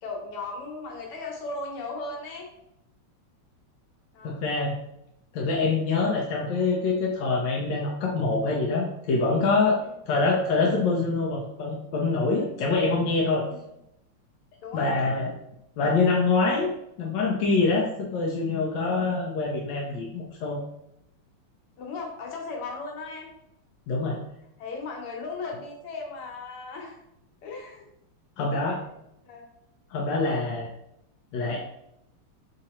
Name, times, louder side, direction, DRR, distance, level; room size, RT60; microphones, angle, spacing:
voice 1, 0.0-2.5 4.1-4.4 9.8-10.0 13.5-13.6 14.6-14.9 21.8-23.3 24.6-27.0 27.4-27.9 29.3-29.5 29.9-30.1, left 3 dB, 85° left, 0 dB, 1.9 m, -36 dB
voice 2, 4.2-4.8 5.3-13.5 14.7-15.3 15.8-16.7 17.0-20.6 23.9-24.2 28.4-28.8 29.9-30.7 31.3-31.6, left 3 dB, 70° left, -2 dB, 1.2 m, -25 dB
3.8 x 2.8 x 4.2 m, 0.80 s
omnidirectional pair, 2.4 m